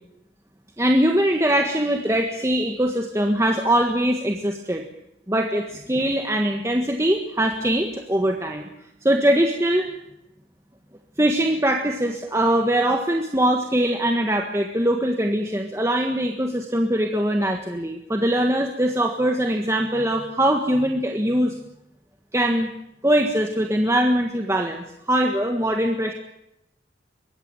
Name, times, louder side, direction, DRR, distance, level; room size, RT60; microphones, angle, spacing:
voice 1, 0.8-4.8 5.3-8.7 9.0-9.9 11.2-21.6 22.3-22.7 23.0-26.1, right 1 dB, 15° right, 3 dB, 1.7 m, -22 dB
23.5 x 20.5 x 9.0 m, 0.82 s
head